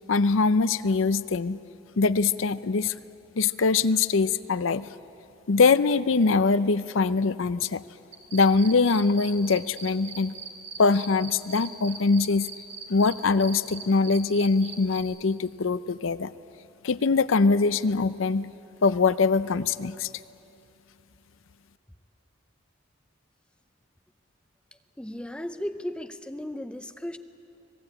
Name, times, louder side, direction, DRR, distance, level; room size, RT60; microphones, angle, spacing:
voice 1, 0.1-1.6 2.0-2.9 3.4-4.8 5.5-7.8 8.3-10.4 10.8-12.5 12.9-16.3 16.8-18.5 18.8-20.1, left 4 dB, 70° left, 14 dB, 0.6 m, -23 dB
sound 1, 8.1-13.1 13.4-15.0, right 5 dB, 50° right, 2.9 m, -39 dB
voice 2, 24.7-27.2, left 1 dB, 5° left, 8 dB, 0.6 m, -36 dB
25.0 x 19.0 x 8.8 m, 2.9 s
head